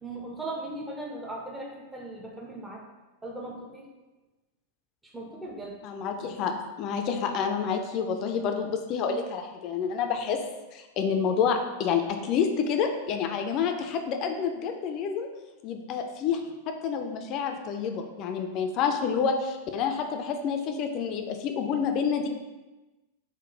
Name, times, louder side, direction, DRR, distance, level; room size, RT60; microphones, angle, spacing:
voice 1, 0.0-2.8 3.2-3.9 5.1-5.8, right 2 dB, 10° right, -2 dB, 0.6 m, -38 dB
voice 2, 5.8-10.4 10.7-15.3 15.6-16.4 16.7-22.3, left 6 dB, 40° left, 5 dB, 0.4 m, -28 dB
3.7 x 2.1 x 3.8 m, 1.1 s
figure-of-eight pair, 90°, 0 cm